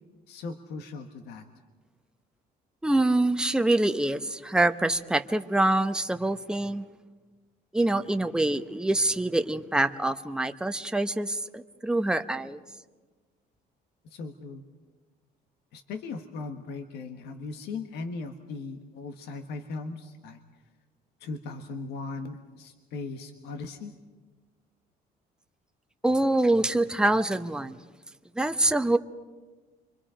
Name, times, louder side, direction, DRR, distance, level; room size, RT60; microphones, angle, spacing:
voice 1, 0.3-1.4 14.0-14.6 15.7-20.4 21.2-23.9, left 3 dB, 75° left, 7 dB, 1.5 m, -38 dB
voice 2, 2.8-6.8 7.7-12.6 26.0-27.8 28.4-29.0, right 2 dB, 5° right, 8 dB, 0.9 m, -25 dB
29.0 x 24.5 x 5.1 m, 1.3 s
cardioid pair, 110°, 17 cm